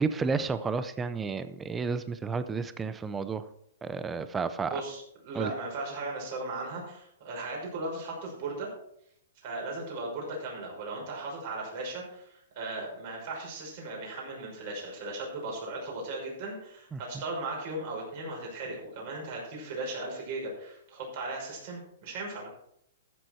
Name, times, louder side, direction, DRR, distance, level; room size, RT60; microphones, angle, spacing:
voice 1, 0.0-3.4 3.8-4.8 5.3-5.5 16.9-17.0, right 4 dB, 10° right, 12 dB, 0.5 m, -31 dB
voice 2, 4.7-8.7 9.4-22.5, right 2 dB, 40° right, -2 dB, 5.8 m, -37 dB
14.0 x 7.5 x 4.5 m, 0.72 s
hypercardioid pair, 165°, 0 cm